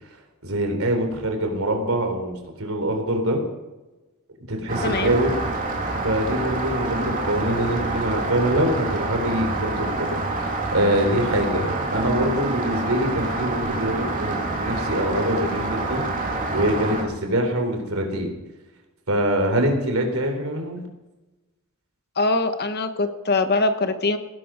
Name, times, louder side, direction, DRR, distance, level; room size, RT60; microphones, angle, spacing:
voice 1, 0.4-3.4 4.5-5.3 6.0-16.0 16.5-18.3 19.1-20.8, right 1 dB, 70° right, 4 dB, 3.6 m, -24 dB
Rain, 4.7-17.0, right 2 dB, 40° right, 3.0 m, -27 dB
voice 2, 4.8-5.2 22.2-24.2, left 3 dB, 50° left, 8 dB, 1.1 m, -22 dB
18.5 x 11.5 x 5.1 m, 1.1 s
head